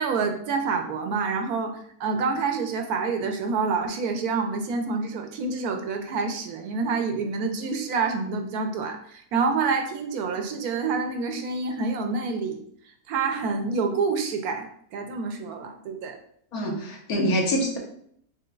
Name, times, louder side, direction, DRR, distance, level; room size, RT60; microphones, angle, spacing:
voice 1, 0.0-12.6 13.1-16.2, right 4 dB, 70° right, 5 dB, 1.0 m, -27 dB
voice 2, 16.5-17.8, equal, 65° left, 0 dB, 1.4 m, -25 dB
6.9 x 3.1 x 2.3 m, 0.66 s
omnidirectional pair, 1.7 m